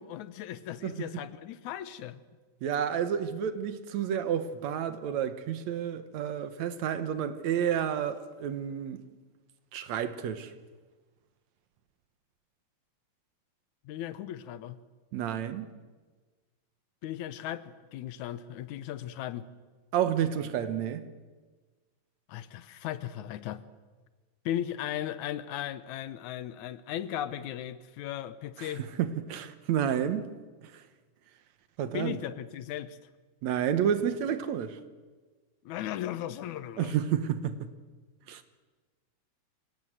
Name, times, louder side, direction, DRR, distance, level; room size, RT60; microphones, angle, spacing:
voice 1, 0.0-2.2 13.9-14.8 17.0-19.5 22.3-23.6 24.5-28.9 31.9-33.0 35.6-36.9, left 11 dB, 80° left, 2.3 m, -37 dB
voice 2, 2.6-9.0 9.7-10.5 15.1-15.7 19.9-21.1 28.6-30.3 30.6-30.8 31.8-32.2 33.4-34.8 36.8-37.7 38.3-38.4, right 9 dB, 70° right, 2.3 m, -30 dB
25.5 x 17.5 x 7.9 m
omnidirectional pair, 3.4 m